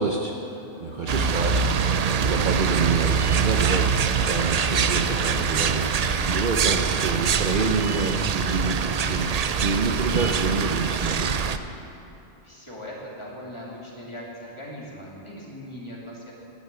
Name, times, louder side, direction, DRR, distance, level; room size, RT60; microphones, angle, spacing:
voice 1, 0.0-1.7 2.2-3.9 4.2-5.9 6.2-9.3 9.6-11.3, right 4 dB, 45° right, 1 dB, 0.8 m, -27 dB
sound 1, 0.6-6.9, left 2 dB, 50° left, 1.1 m, -44 dB
sound 2, 1.1-11.6, right 6 dB, 70° right, 0.3 m, -24 dB
voice 2, 12.4-16.3, equal, 25° left, -5 dB, 2.5 m, -39 dB
11.5 x 6.8 x 9.4 m, 2.8 s
omnidirectional pair, 1.3 m